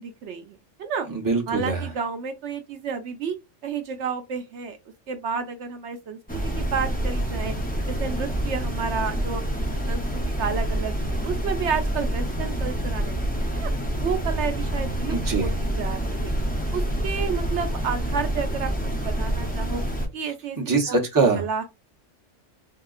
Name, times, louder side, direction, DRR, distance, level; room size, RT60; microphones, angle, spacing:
voice 1, 0.0-1.1 1.5-3.4 3.6-4.8 5.1-7.5 7.9-9.4 9.9-13.3 13.5-13.7 14.0-16.3 16.7-19.8 20.1-20.6 20.9-21.1 21.4-21.6, right 6 dB, 70° right, 0.9 m, -31 dB
voice 2, 1.1-1.9 15.1-15.5 20.6-21.5, right 4 dB, 20° right, 0.8 m, -23 dB
sound 1, 6.3-20.1, right 1 dB, 10° left, 0.5 m, -27 dB
3.6 x 2.8 x 2.4 m
omnidirectional pair, 1.3 m